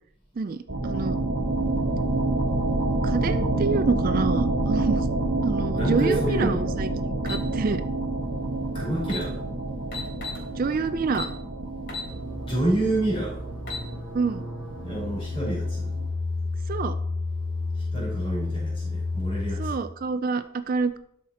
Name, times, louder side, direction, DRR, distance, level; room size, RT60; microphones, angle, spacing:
voice 1, 0.4-1.2 3.0-5.1 5.4-7.8 10.6-11.3 14.1-14.4 16.7-17.0 19.6-21.0, right 4 dB, 40° right, 11 dB, 0.3 m, -27 dB
sound 1, 0.7-16.1, right 2 dB, 70° right, 1.2 m, -28 dB
voice 2, 5.7-6.6 8.7-9.4 12.4-13.4 14.8-15.9 17.9-19.7, right 1 dB, 25° left, -4 dB, 4.2 m, -28 dB
sound 2, 7.3-7.5 8.7-8.8 9.0-9.3 9.9-10.4 11.1-11.4 11.9-12.1 12.6-12.7 13.4-13.9, left 4 dB, 55° left, 3.3 m, -34 dB
sound 3, 12.1-19.7, left 3 dB, 80° left, 2.6 m, -31 dB
12.0 x 5.8 x 4.2 m, 0.72 s
head